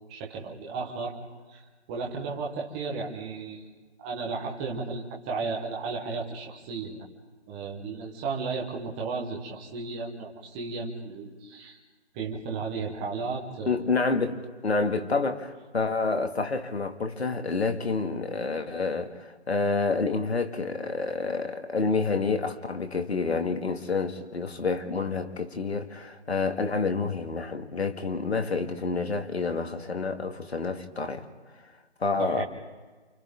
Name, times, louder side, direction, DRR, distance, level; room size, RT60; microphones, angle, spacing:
voice 1, 0.1-1.2 1.5-3.7 4.0-7.0 7.5-11.8 12.1-13.9 32.2-32.4, right 4 dB, 5° right, 1.0 m, -34 dB
voice 2, 13.6-31.3 32.0-32.4, left 4 dB, 65° left, 2.1 m, -28 dB
29.0 x 25.5 x 3.7 m
figure-of-eight pair, 160°, 34 cm